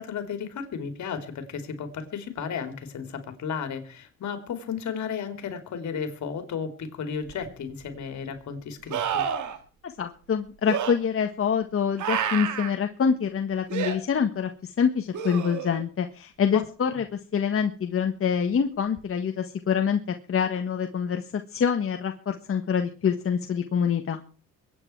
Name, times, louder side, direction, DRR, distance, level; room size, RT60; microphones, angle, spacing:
voice 1, 0.0-9.3 16.5-16.6, left 6 dB, 70° left, 7 dB, 3.5 m, -34 dB
sound 1, 7.3-7.4 8.9-9.6 10.7-10.9 12.0-12.7 13.7-14.0 15.1-15.8 19.0-19.1, right 8 dB, 75° right, 2.3 m, -29 dB
voice 2, 9.8-24.2, left 7 dB, 45° left, 6 dB, 1.5 m, -26 dB
23.0 x 9.5 x 4.7 m, 0.38 s
cardioid pair, 90°, 30 cm